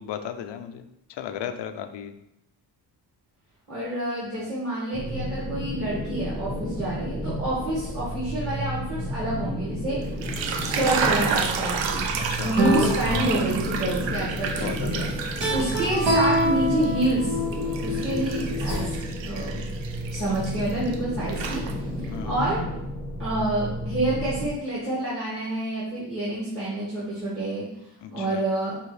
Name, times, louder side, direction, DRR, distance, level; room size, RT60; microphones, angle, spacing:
voice 1, 0.0-2.2 12.2-12.6 14.6-15.1 18.2-18.3 22.1-22.4 28.0-28.4, left 9 dB, 75° left, 8 dB, 0.5 m, -35 dB
voice 2, 3.7-10.0 10.6-12.1 12.4-15.1 15.5-17.3 17.8-18.9 19.2-19.7 20.1-21.6 22.0-22.6 23.2-27.7 28.1-28.7, right 1 dB, 30° right, -8 dB, 1.5 m, -28 dB
sound 1, 4.9-24.5, equal, ahead, 0.8 m, -32 dB
sound 2, 10.0-16.5 16.8-21.0 21.3-22.1, right 6 dB, 90° right, 0.6 m, -31 dB
sound 3, 12.6-14.3 15.3-19.0, equal, 70° right, 1.6 m, -26 dB
5.4 x 2.5 x 3.2 m, 0.82 s
cardioid pair, 85°, 43 cm